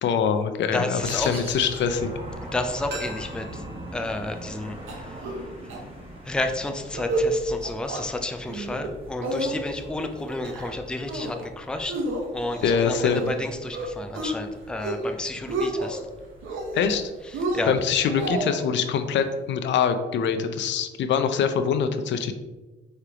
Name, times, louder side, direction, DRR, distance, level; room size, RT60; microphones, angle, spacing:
voice 1, 0.0-2.1 12.6-13.2 16.7-17.1 17.7-22.3, left 7 dB, 65° left, 8 dB, 0.5 m, -24 dB
voice 2, 0.7-1.3 2.4-3.6 3.9-5.9 6.2-12.0 12.3-16.0 17.2-17.7, left 2 dB, 5° left, 5 dB, 0.4 m, -31 dB
sound 1, 1.0-18.4, equal, 25° right, 1.4 m, -42 dB
sound 2, 2.9-5.7 6.0-6.1, right 2 dB, 60° right, 1.4 m, -43 dB
sound 3, 4.9-5.4 5.7-5.8 6.2-6.4 6.8-7.3 7.6-8.0 8.5-8.9 9.2-9.9 10.3-10.7 11.1-11.5 11.9-13.4 13.7-14.4 14.7-15.1 15.4-16.0 16.4-17.0 17.3-18.6, right 2 dB, 80° right, 0.9 m, -30 dB
4.8 x 3.3 x 2.9 m, 1.2 s
cardioid pair, 90°, 20 cm